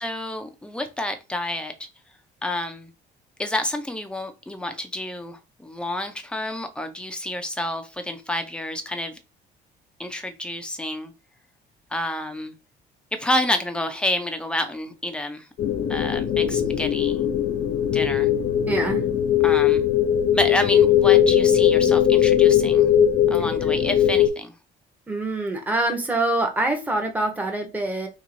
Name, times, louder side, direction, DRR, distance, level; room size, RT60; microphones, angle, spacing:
voice 1, 0.0-1.7 2.4-2.9 3.4-9.2 10.0-11.1 11.9-12.5 13.1-15.5 15.9-17.2 17.9-18.3 19.4-19.8 20.3-22.9 23.3-24.5, left 1 dB, 5° left, 0.7 m, -29 dB
sound 1, 15.6-24.3, left 10 dB, 55° left, 0.7 m, -19 dB
voice 2, 18.7-19.0 25.1-28.1, right 2 dB, 10° right, 1.0 m, -25 dB
3.1 x 2.6 x 3.9 m
cardioid pair, 110°, 17 cm